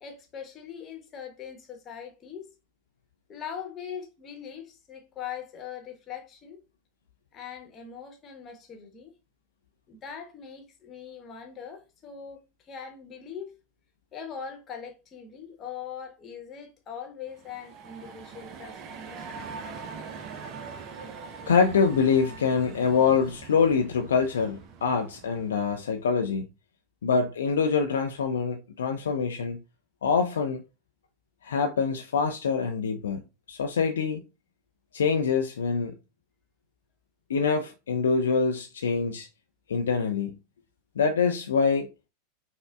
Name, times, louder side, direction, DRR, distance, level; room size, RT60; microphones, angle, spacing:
voice 1, 0.0-2.5 3.3-6.6 7.3-9.1 9.9-13.5 14.1-19.4, left 7 dB, 30° left, 1.0 m, -41 dB
sound 1, 17.3-26.0, right 5 dB, 40° right, 0.5 m, -43 dB
voice 2, 21.5-26.5 27.0-29.6 30.0-30.6 31.4-33.2 33.5-34.2 34.9-36.0 37.3-39.3 39.7-40.3 41.0-41.9, left 5 dB, 70° left, 0.4 m, -25 dB
5.4 x 2.1 x 2.3 m
figure-of-eight pair, 85°, 0 cm